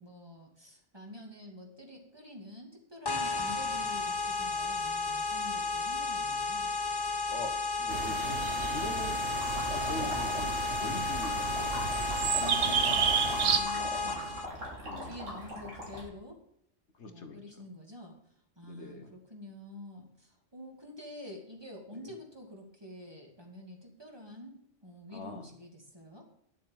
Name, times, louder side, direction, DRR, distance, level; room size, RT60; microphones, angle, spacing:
voice 1, 0.0-6.8 12.4-14.4 15.0-16.4 17.0-18.2 18.6-24.6 24.8-26.3, left 1 dB, 20° right, 1 dB, 2.4 m, -47 dB
sound 1, 3.1-14.5, left 3 dB, 20° left, 0.9 m, -33 dB
voice 2, 7.3-9.2 9.6-11.9 13.6-13.9 14.8-15.1 16.9-17.6 18.6-19.1 22.0-22.1 25.1-25.5, left 2 dB, 65° left, 7 dB, 1.5 m, -43 dB
sound 2, 7.9-13.6, right 7 dB, 70° right, 1.1 m, -32 dB
sound 3, 9.3-16.0, equal, 90° right, 4.1 m, -41 dB
11.0 x 7.4 x 7.2 m, 0.71 s
omnidirectional pair, 1.3 m